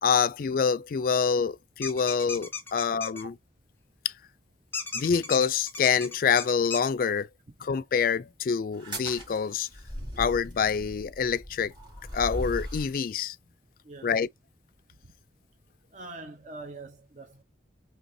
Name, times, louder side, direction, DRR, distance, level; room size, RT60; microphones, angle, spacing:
voice 1, 0.0-3.4 4.0-4.1 4.9-7.3 7.6-9.7 10.2-11.7 12.1-13.4 14.0-14.3, left 6 dB, 50° left, 0.3 m, -26 dB
sound 1, 1.8-3.2 4.7-6.9, left 5 dB, 10° left, 0.8 m, -36 dB
sound 2, 8.7-13.0, equal, 25° right, 3.5 m, -38 dB
voice 2, 13.8-14.2 15.9-17.4, right 3 dB, 40° right, 0.7 m, -43 dB
5.2 x 3.3 x 2.7 m
head